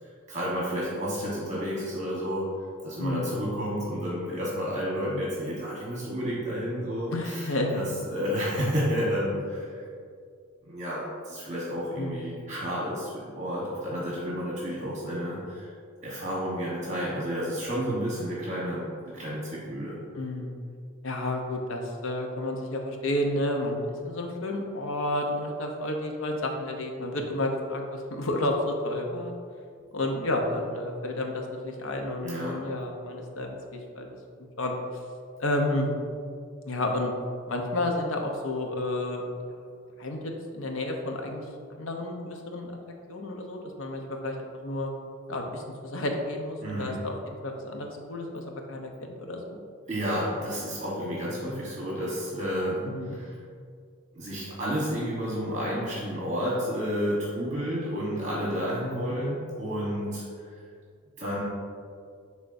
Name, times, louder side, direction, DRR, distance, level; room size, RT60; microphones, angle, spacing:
voice 1, 0.0-2.5 2.8-9.8 10.6-15.7 16.0-20.0 32.2-32.6 46.6-47.0 49.8-53.4 54.1-60.2 60.5-60.6 61.2-61.4, equal, 35° right, -6 dB, 1.1 m, -31 dB
voice 2, 3.0-3.4 7.1-7.8 12.0-12.2 20.1-20.5 21.0-23.8 24.0-29.4 29.9-34.1 34.6-34.8 35.4-35.9 36.7-37.1 37.5-39.2 40.0-41.5 41.8-42.7 43.1-44.9 45.3-49.6 52.8-53.2 58.8-59.2, left 1 dB, 75° left, 2 dB, 0.8 m, -31 dB
10.5 x 3.6 x 2.6 m, 2.3 s
head